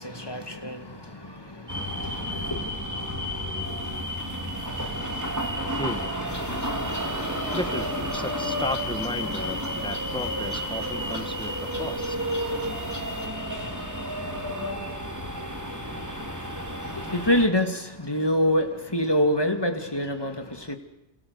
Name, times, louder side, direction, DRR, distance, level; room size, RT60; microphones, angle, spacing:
voice 1, 0.0-2.7 16.8-20.8, left 1 dB, 20° left, 2.3 m, -26 dB
sound 1, 1.7-17.5, equal, 15° right, 3.0 m, -31 dB
voice 2, 5.8-6.1 7.5-12.2, left 1 dB, 5° left, 1.4 m, -34 dB
sound 2, 6.3-13.3, left 1 dB, 60° left, 3.7 m, -44 dB
28.0 x 27.5 x 6.8 m
omnidirectional pair, 1.2 m